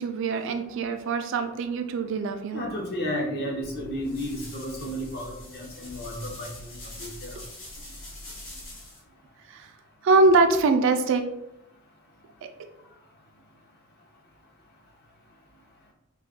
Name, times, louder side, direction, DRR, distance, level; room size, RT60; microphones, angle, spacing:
voice 1, 0.0-2.7 9.5-9.7 10.0-11.2, right 3 dB, 60° right, 7 dB, 0.3 m, -23 dB
voice 2, 2.5-7.4, equal, 45° left, 0 dB, 0.6 m, -33 dB
sound 1, 3.6-9.0, left 1 dB, 60° left, 1.0 m, -43 dB
2.3 x 2.2 x 3.5 m, 0.84 s
head